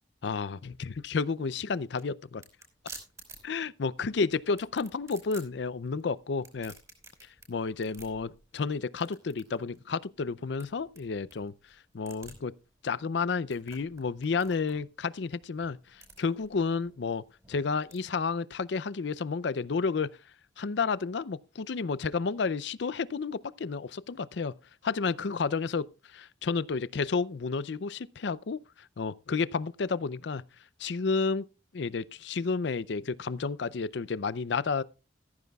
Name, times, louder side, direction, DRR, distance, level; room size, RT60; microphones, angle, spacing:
voice 1, 0.2-2.4 3.4-6.7 7.5-11.5 11.9-12.5 12.8-15.8 16.2-20.1 20.6-24.5 24.8-25.9 26.1-28.6 29.0-30.4 30.8-31.5 31.7-34.8, left 4 dB, 65° left, 0.5 m, -31 dB
sound 1, 1.4-18.0, right 3 dB, 15° right, 4.9 m, -53 dB
15.0 x 14.5 x 2.3 m
head